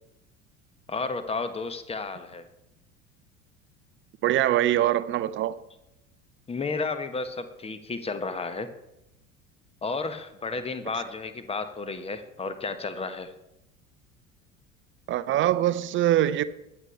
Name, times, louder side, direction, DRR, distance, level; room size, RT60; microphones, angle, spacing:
voice 1, 0.9-2.5 6.5-8.7 9.8-13.3, left 4 dB, 15° left, 1.1 m, -32 dB
voice 2, 4.2-5.6 15.1-16.4, right 13 dB, 30° right, 0.6 m, -23 dB
22.0 x 8.0 x 3.3 m
figure-of-eight pair, 70°, 39 cm